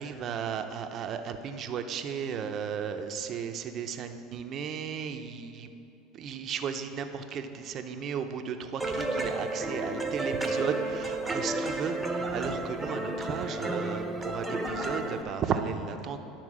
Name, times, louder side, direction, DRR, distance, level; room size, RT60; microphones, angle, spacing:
voice 1, 0.0-5.7 6.1-16.2, right 7 dB, 45° right, 7 dB, 0.6 m, -35 dB
sound 1, 8.8-15.2, right 2 dB, 5° right, 0.9 m, -32 dB
11.5 x 4.5 x 6.1 m, 2.8 s
supercardioid pair, 115°, 0 cm